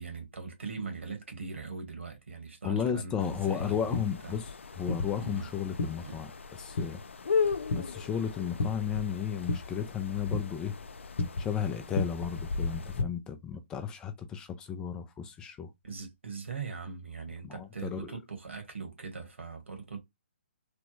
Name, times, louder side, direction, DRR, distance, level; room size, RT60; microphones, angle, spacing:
voice 1, 0.0-4.4 5.2-5.5 6.0-6.2 15.8-20.0, right 5 dB, 80° right, 1.5 m, -41 dB
voice 2, 2.6-4.4 4.8-6.3 6.6-7.0 7.7-10.8 11.4-15.7 17.4-18.0, left 8 dB, 10° left, 0.3 m, -33 dB
sound 1, 3.2-13.0, left 6 dB, 85° left, 0.4 m, -38 dB
sound 2, 3.3-13.1, left 3 dB, 60° left, 0.7 m, -36 dB
3.4 x 2.0 x 3.0 m
hypercardioid pair, 150°, 6 cm